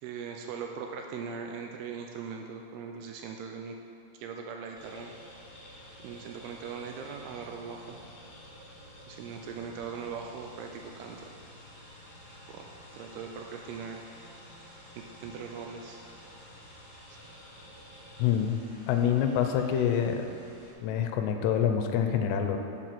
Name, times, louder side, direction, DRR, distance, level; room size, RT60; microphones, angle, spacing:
voice 1, 0.0-3.8 4.1-5.1 6.0-8.0 9.1-11.3 12.5-12.7 12.9-14.0 15.2-16.0 17.1-17.2, right 6 dB, 85° right, 2 dB, 2.4 m, -40 dB
sound 1, 4.8-20.7, equal, 20° left, 1.3 m, -50 dB
voice 2, 18.2-18.6 18.9-20.3 20.8-22.6, left 8 dB, 85° left, 5 dB, 2.8 m, -26 dB
9.0 x 7.3 x 6.1 m, 2.6 s
omnidirectional pair, 4.9 m